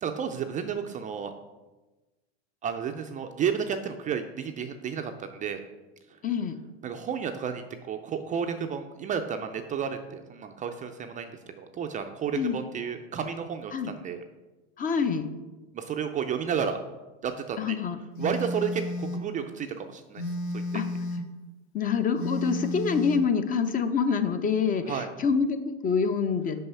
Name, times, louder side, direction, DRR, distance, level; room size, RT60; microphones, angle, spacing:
voice 1, 0.0-1.3 2.6-5.6 6.8-14.2 15.7-16.8 17.2-17.8 18.2-20.2 20.5-20.8 24.9-25.1, right 7 dB, 25° right, 6 dB, 0.4 m, -32 dB
voice 2, 6.2-6.6 12.3-12.6 13.7-13.9 14.8-15.3 17.6-18.0 20.7-20.9 21.7-26.6, left 6 dB, 25° left, 9 dB, 0.5 m, -26 dB
Telephone, 18.2-19.3 20.2-21.3 22.2-23.3, left 1 dB, 70° left, 1.1 m, -32 dB
5.6 x 5.5 x 5.5 m, 1.1 s
hypercardioid pair, 110°, 34 cm